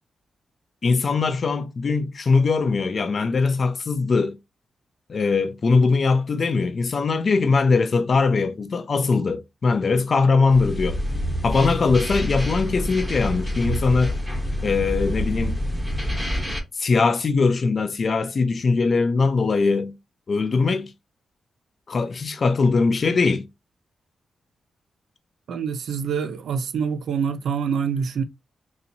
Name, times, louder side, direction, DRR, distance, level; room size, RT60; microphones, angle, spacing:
voice 1, 0.8-4.4 5.1-11.0 11.4-14.1 14.6-15.5 16.8-19.9 20.3-20.9 21.9-23.5, left 4 dB, 40° left, 0.5 m, -21 dB
sound 1, 10.5-16.6, equal, 5° right, 0.9 m, -27 dB
voice 2, 25.5-28.2, right 6 dB, 75° right, 0.5 m, -26 dB
4.1 x 2.7 x 2.7 m
wide cardioid pair, 140°, 0 cm